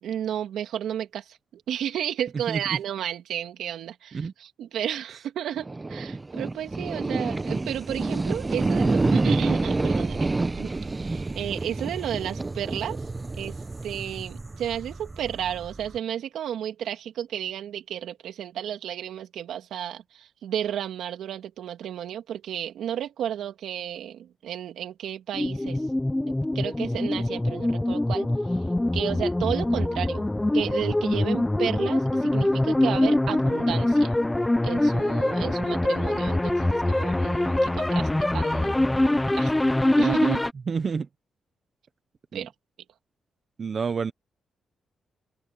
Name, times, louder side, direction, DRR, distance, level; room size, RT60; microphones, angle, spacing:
voice 1, 0.0-10.3 10.6-10.7 11.0-13.0 13.4-13.5 13.8-25.8 26.3-28.3 28.9-30.3 30.5-34.1 34.6-38.7 39.3-39.5 40.0-40.4 42.3-42.5, right 10 dB, 85° right, 3.1 m, -32 dB
sound 1, 5.6-16.0, right 3 dB, 20° right, 1.1 m, -28 dB
sound 2, 25.3-40.5, left 1 dB, 10° left, 1.0 m, -24 dB
voice 2, 40.7-41.1 42.3-42.4 43.6-44.1, right 5 dB, 45° right, 0.9 m, -28 dB
cardioid pair, 105°, 0 cm